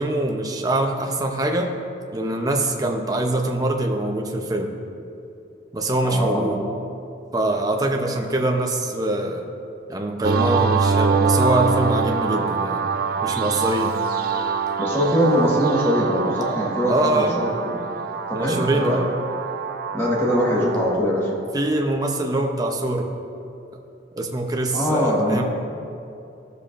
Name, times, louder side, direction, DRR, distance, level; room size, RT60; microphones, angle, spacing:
voice 1, 0.0-1.8 2.1-4.7 5.7-6.6 7.3-9.4 9.9-12.9 13.2-14.0 16.9-17.4 18.3-19.1 21.5-23.1 24.1-25.4, right 1 dB, 20° right, 2 dB, 0.7 m, -23 dB
voice 2, 6.0-6.4 14.8-17.8 18.3-19.0 19.9-21.3 24.7-25.4, equal, 15° left, -5 dB, 1.5 m, -22 dB
sound 1, 10.2-21.0, right 5 dB, 50° right, 0.4 m, -24 dB
15.5 x 6.8 x 2.5 m, 2.6 s
head